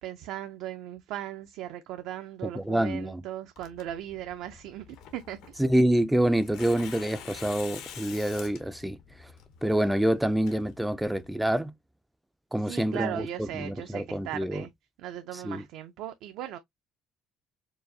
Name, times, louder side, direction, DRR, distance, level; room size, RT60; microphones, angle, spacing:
voice 1, 0.0-4.9 5.1-5.6 12.6-14.7 15.0-16.6, right 12 dB, 70° right, 0.4 m, -38 dB
voice 2, 2.6-3.2 5.6-9.0 9.6-11.7 12.5-13.2 13.5-14.6 15.4-15.6, right 1 dB, 5° right, 0.3 m, -26 dB
Tearing, 3.6-11.3, left 8 dB, 70° left, 0.9 m, -47 dB
4.7 x 2.5 x 2.6 m
cardioid pair, 170°, 0 cm